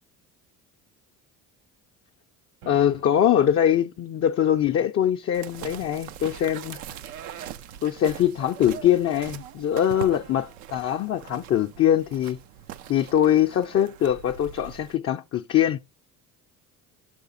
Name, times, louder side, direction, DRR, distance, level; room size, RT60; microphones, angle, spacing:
sound 1, 2.6-3.6, right 5 dB, 70° right, 1.4 m, -49 dB
voice 1, 2.7-6.8 7.8-12.4 12.9-15.8, left 10 dB, 35° left, 0.5 m, -22 dB
sound 2, 5.3-15.0, right 10 dB, 85° right, 0.6 m, -41 dB
6.7 x 5.0 x 3.8 m
hypercardioid pair, 60°, 42 cm